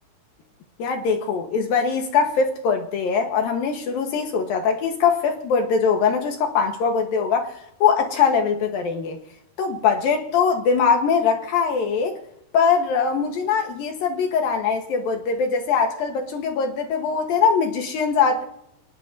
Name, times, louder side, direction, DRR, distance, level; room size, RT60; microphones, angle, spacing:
voice 1, 0.8-9.2 9.6-12.2 12.5-18.4, left 6 dB, 65° left, 2.8 m, -22 dB
26.0 x 19.5 x 2.7 m
omnidirectional pair, 4.8 m